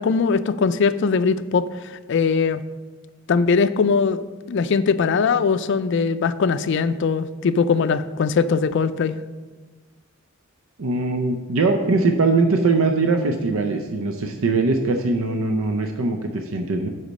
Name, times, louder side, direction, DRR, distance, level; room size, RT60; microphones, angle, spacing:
voice 1, 0.0-1.7 2.1-2.6 3.3-4.2 4.5-9.2, left 5 dB, 60° left, 13 dB, 0.4 m, -20 dB
voice 2, 10.8-16.9, right 3 dB, 90° right, 5 dB, 0.6 m, -21 dB
8.1 x 5.7 x 5.2 m, 1.3 s
head